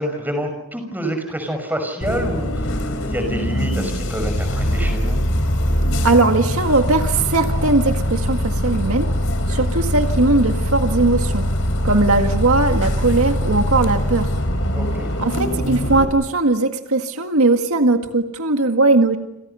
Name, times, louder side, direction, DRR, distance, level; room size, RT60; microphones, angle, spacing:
voice 1, 0.0-5.2 14.7-15.1, equal, 10° right, 6 dB, 5.9 m, -27 dB
Bus, 2.0-16.0, equal, 65° left, 4.3 m, -22 dB
voice 2, 6.0-9.1 9.5-11.4 11.8-14.3 15.2-19.2, right 2 dB, 80° right, 5 dB, 1.9 m, -18 dB
30.0 x 28.0 x 5.7 m, 0.86 s
head